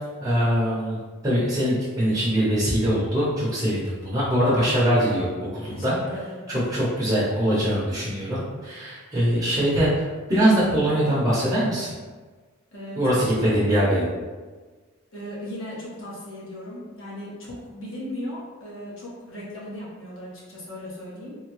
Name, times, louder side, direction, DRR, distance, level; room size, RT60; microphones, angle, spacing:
voice 1, 0.2-1.0 1.2-5.9 6.5-11.9 13.0-14.1, equal, 20° right, -9 dB, 0.8 m, -22 dB
voice 2, 5.7-6.4 12.7-13.6 15.1-21.4, left 1 dB, 65° left, -6 dB, 1.1 m, -37 dB
3.5 x 2.2 x 3.1 m, 1.4 s
head